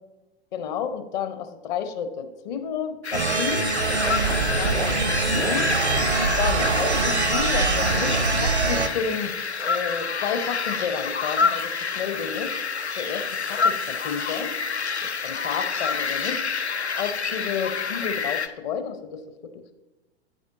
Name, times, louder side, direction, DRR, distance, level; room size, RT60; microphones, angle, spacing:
voice 1, 0.5-3.7 4.2-5.7 6.4-9.3 9.6-12.5 13.0-14.5 15.0-16.4 16.9-19.7, left 7 dB, 45° left, 9 dB, 0.9 m, -31 dB
sound 1, 3.0-18.5, left 5 dB, 85° left, 0.6 m, -28 dB
sound 2, 3.1-8.9, right 4 dB, 85° right, 0.7 m, -24 dB
9.5 x 8.8 x 2.6 m, 1.1 s
figure-of-eight pair, 95°, 32 cm